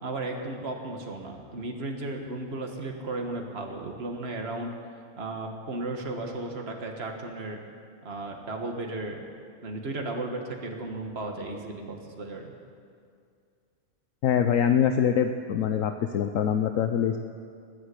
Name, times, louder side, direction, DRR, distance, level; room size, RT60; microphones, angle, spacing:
voice 1, 0.0-4.7 5.2-7.6 8.0-9.2 9.6-12.5, right 2 dB, 50° right, 2 dB, 1.8 m, -35 dB
voice 2, 14.2-17.2, left 8 dB, 70° left, 7 dB, 1.0 m, -24 dB
20.5 x 8.1 x 8.3 m, 2.3 s
omnidirectional pair, 1.5 m